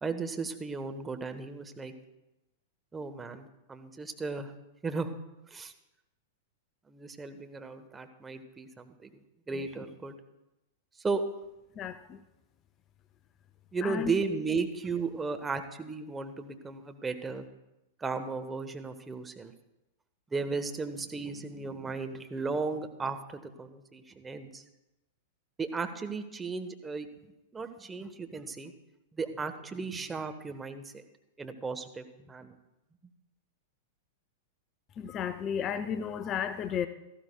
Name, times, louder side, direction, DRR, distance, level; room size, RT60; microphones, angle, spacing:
voice 1, 0.0-1.9 2.9-4.5 4.8-5.1 5.5-5.7 6.9-10.1 11.0-11.2 13.7-17.5 18.0-19.5 20.3-24.6 25.6-27.1 27.5-28.7 29.1-31.0 31.4-32.5, right 4 dB, 15° right, 7 dB, 1.0 m, -35 dB
voice 2, 11.8-12.2 13.8-14.1 35.0-36.9, left 7 dB, 30° left, 12 dB, 0.6 m, -33 dB
17.0 x 14.0 x 2.3 m, 0.95 s
figure-of-eight pair, 95°, 0 cm